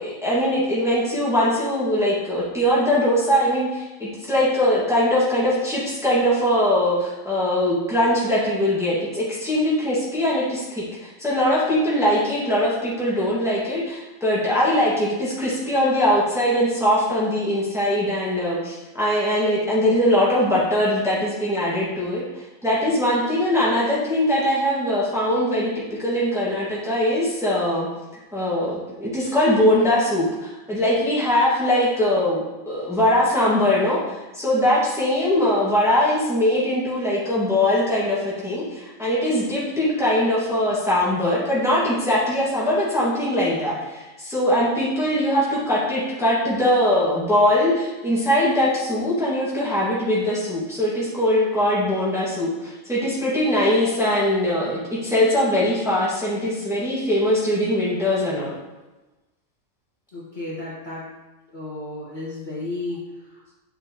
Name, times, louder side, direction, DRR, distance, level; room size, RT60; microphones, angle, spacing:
voice 1, 0.0-27.9 28.3-58.5, left 1 dB, ahead, -8 dB, 1.9 m, -21 dB
voice 2, 60.1-61.1 61.5-63.5, left 2 dB, 30° left, -8 dB, 1.8 m, -33 dB
8.8 x 6.5 x 3.1 m, 1.1 s
omnidirectional pair, 1.5 m